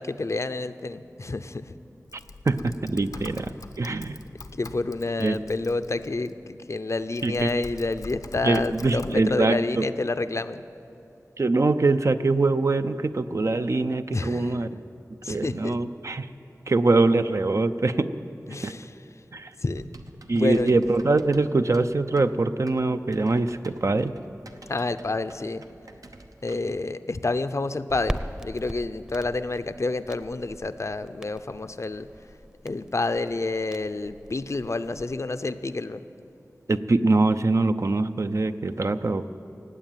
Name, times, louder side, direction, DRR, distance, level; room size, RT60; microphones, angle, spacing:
voice 1, 0.0-1.6 4.5-10.6 14.1-14.5 15.2-15.8 18.5-18.8 19.6-19.9 20.3-20.8 24.7-25.6 26.4-32.1 32.6-36.0, left 3 dB, 55° left, 11 dB, 0.6 m, -29 dB
Typing, 2.1-6.3 6.9-9.2, left 3 dB, 80° left, 0.8 m, -44 dB
voice 2, 2.5-4.2 5.2-5.4 7.2-7.5 8.4-9.9 11.4-14.8 15.3-16.3 16.7-18.1 18.6-18.7 19.3-19.5 20.3-24.1 36.7-39.3, right 3 dB, 55° right, 10 dB, 0.6 m, -23 dB
Typing 2, 19.7-26.8, right 2 dB, 75° right, 0.9 m, -49 dB
Crackle, 27.9-35.2, equal, 10° right, 0.8 m, -40 dB
16.5 x 8.7 x 9.2 m, 2.7 s
wide cardioid pair, 55°, 6 cm